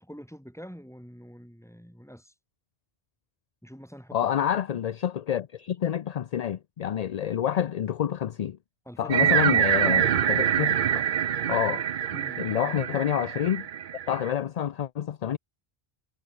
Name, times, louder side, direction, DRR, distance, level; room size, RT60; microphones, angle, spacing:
voice 1, 0.0-2.3 3.6-4.8 8.9-9.4 12.1-12.4, equal, 5° left, 7.1 m, -45 dB
voice 2, 4.1-8.6 9.0-11.0 11.5-11.9 12.4-13.7 14.1-15.4, left 10 dB, 55° left, 0.5 m, -28 dB
sound 1, 9.1-14.3, right 9 dB, 55° right, 0.8 m, -25 dB
omnidirectional pair, 1.0 m